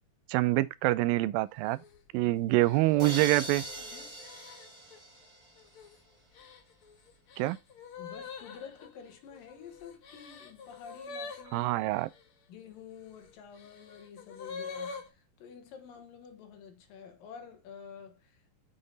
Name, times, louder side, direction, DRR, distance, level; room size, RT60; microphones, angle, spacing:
voice 1, 0.3-1.8 2.1-3.6 7.4-7.6 11.5-12.1, right 18 dB, 90° right, 2.4 m, -26 dB
sound 1, 1.6-2.0 2.6-5.0 5.6-6.0 6.3-12.2 13.0-15.1, left 4 dB, 55° left, 1.6 m, -46 dB
sound 2, 3.0-5.8, right 1 dB, 10° right, 1.4 m, -41 dB
voice 2, 3.8-4.2 8.0-11.7 12.5-18.5, left 6 dB, 80° left, 3.0 m, -49 dB
7.8 x 6.4 x 3.9 m
omnidirectional pair, 4.0 m